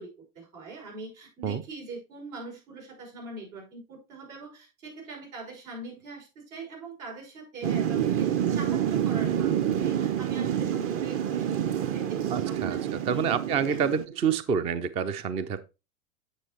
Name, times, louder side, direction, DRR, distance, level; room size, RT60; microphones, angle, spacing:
voice 1, 0.0-13.3 13.7-13.8, right 3 dB, 70° right, -1 dB, 5.9 m, -42 dB
Thunder / Rain, 7.6-14.1, right 10 dB, 30° right, 0.7 m, -27 dB
voice 2, 12.3-12.8 13.1-15.6, right 7 dB, 15° right, 14 dB, 0.3 m, -27 dB
8.8 x 7.3 x 2.9 m, 0.28 s
hypercardioid pair, 105°, 42 cm